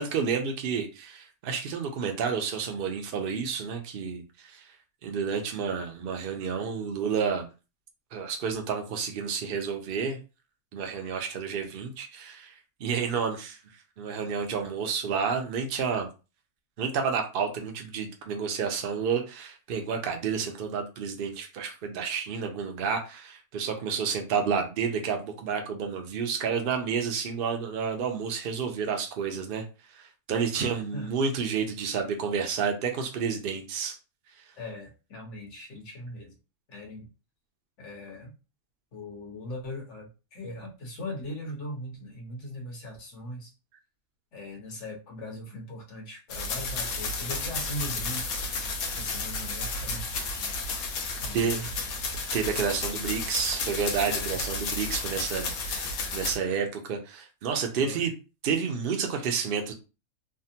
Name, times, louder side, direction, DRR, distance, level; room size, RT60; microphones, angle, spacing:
voice 1, 0.0-4.6 5.0-7.5 8.1-10.2 10.7-12.5 12.8-13.6 14.0-16.1 16.8-29.6 29.9-34.0 51.3-51.7 52.3-58.1 58.4-59.7, right 6 dB, 85° right, 4 dB, 0.4 m, -30 dB
voice 2, 30.5-31.1 34.5-36.3 36.7-37.1 37.8-38.3 38.9-43.5 44.3-48.4 49.0-50.0 51.2-51.7 54.0-54.4 57.8-58.1, left 1 dB, 55° left, -1 dB, 1.3 m, -40 dB
sound 1, 46.3-56.4, left 3 dB, 70° left, 1.1 m, -32 dB
3.4 x 2.0 x 2.7 m, 0.31 s
omnidirectional pair, 1.6 m